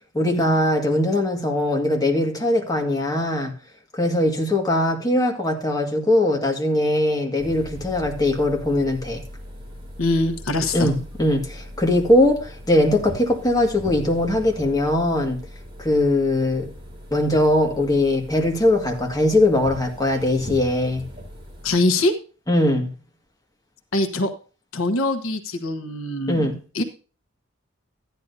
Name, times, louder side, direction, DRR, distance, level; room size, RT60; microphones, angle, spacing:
voice 1, 0.1-3.5 3.9-9.2 10.7-15.4 15.8-16.7 17.1-21.1 22.5-22.9 26.3-26.6, left 1 dB, 20° left, 1.9 m, -21 dB
sound 1, 7.4-21.8, equal, 25° right, 2.9 m, -39 dB
voice 2, 10.0-10.9 21.6-22.1 23.9-24.3 24.7-26.5 26.7-26.8, left 2 dB, 90° left, 1.2 m, -23 dB
13.5 x 10.5 x 2.8 m
head